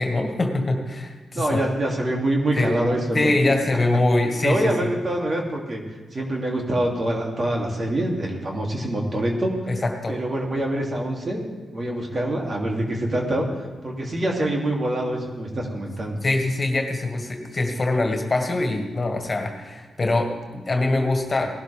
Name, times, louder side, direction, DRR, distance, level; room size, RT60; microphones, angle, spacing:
voice 1, 0.0-1.6 2.6-2.7 3.1-4.9 9.7-10.2 16.2-21.5, left 2 dB, 40° left, 3 dB, 2.0 m, -23 dB
voice 2, 1.3-3.3 4.4-5.8 6.1-9.5 10.1-13.5 13.8-16.2, right 1 dB, 45° right, -1 dB, 2.8 m, -25 dB
18.5 x 12.0 x 3.5 m, 1.3 s
supercardioid pair, 45°, 0 cm